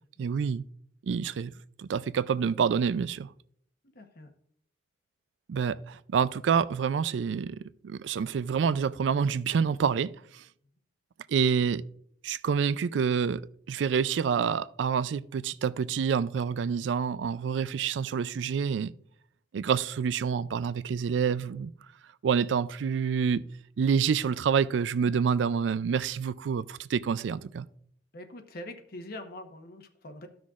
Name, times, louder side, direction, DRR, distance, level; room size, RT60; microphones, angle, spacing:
voice 1, 0.2-0.6 1.0-1.5 1.8-3.3 5.5-10.4 11.3-11.8 12.2-13.4 13.7-18.9 19.5-21.7 22.2-23.4 23.8-27.7, right 6 dB, 85° right, 0.4 m, -27 dB
voice 2, 3.8-4.3 28.1-30.3, left 1 dB, 55° left, 0.9 m, -44 dB
14.0 x 6.2 x 2.4 m
head